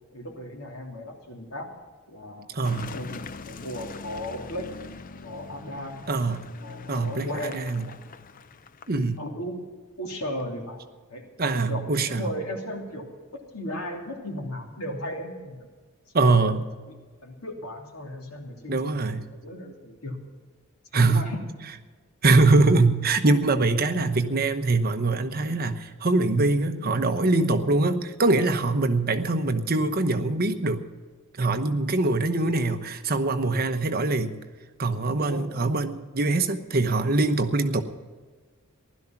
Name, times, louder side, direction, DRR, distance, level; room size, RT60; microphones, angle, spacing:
voice 1, 0.1-1.7 2.1-2.5 2.9-4.7 5.2-6.0 6.6-8.0 9.2-9.6 10.0-10.8 11.1-11.2 11.7-13.1 13.3-15.7 16.2-16.6 16.9-17.0 17.2-19.0 19.3-20.2 20.9-21.4 35.2-35.5, equal, 90° left, 0 dB, 3.1 m, -35 dB
voice 2, 2.5-3.0 6.1-6.4 6.9-7.9 8.9-9.2 11.4-12.3 16.1-16.6 18.7-19.2 20.9-21.2 22.2-30.8 31.4-34.4 34.8-37.8, right 3 dB, 45° right, 8 dB, 1.0 m, -23 dB
Car passing by / Engine, 2.6-9.2, left 4 dB, 40° left, 0.5 m, -42 dB
16.0 x 12.0 x 5.9 m, 1.4 s
head